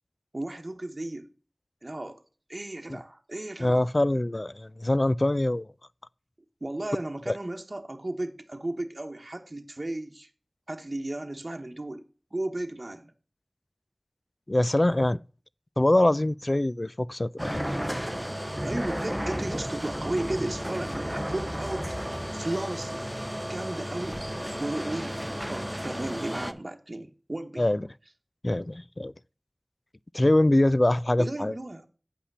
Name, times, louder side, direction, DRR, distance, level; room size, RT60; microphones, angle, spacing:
voice 1, 0.3-1.3 1.8-2.2 2.5-3.9 6.6-10.3 10.7-12.0 12.3-13.1 18.6-23.1 23.5-24.2 24.6-27.6 31.2-31.9, right 1 dB, 55° right, 1.0 m, -34 dB
voice 2, 3.6-5.7 7.3-7.4 14.5-15.2 15.8-17.6 27.6-27.9 28.4-29.1 30.1-31.5, left 1 dB, 45° left, 0.3 m, -24 dB
sound 1, 17.4-26.5, equal, 5° right, 0.7 m, -33 dB
8.4 x 5.7 x 5.4 m
wide cardioid pair, 40°, 0 cm